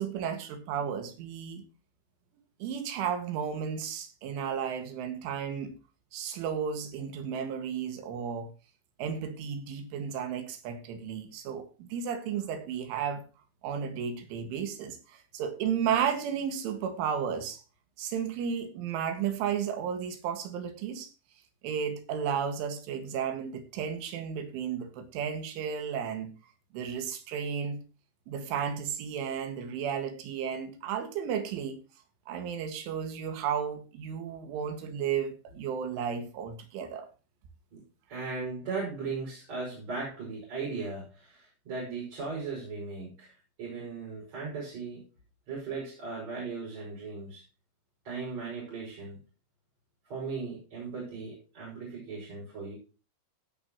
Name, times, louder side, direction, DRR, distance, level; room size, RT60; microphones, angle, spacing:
voice 1, 0.0-1.7 2.6-5.7 6.1-8.5 9.0-13.2 13.6-17.6 18.0-21.1 21.6-26.3 26.7-27.8 28.3-31.8 32.3-37.1, right 7 dB, 90° right, 4.3 m, -33 dB
voice 2, 38.1-45.0 45.5-47.5 48.0-49.2 50.1-52.8, right 4 dB, 35° right, 6.7 m, -37 dB
16.5 x 9.5 x 3.0 m
omnidirectional pair, 5.4 m